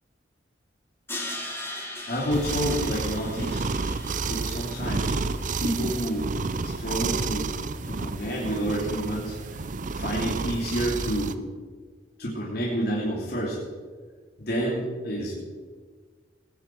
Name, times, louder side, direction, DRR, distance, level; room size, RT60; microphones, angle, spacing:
Crash cymbal, 1.1-6.1, left 1 dB, 15° left, 3.2 m, -39 dB
voice 1, 2.1-3.6 4.2-5.2 5.6-6.3 6.6-7.5 7.8-9.4 9.9-11.4 12.2-13.5 14.4-15.3, equal, 60° left, -6 dB, 3.0 m, -29 dB
sound 1, 2.3-11.3, right 4 dB, 45° right, 0.6 m, -30 dB
19.5 x 10.0 x 4.7 m, 1.5 s
head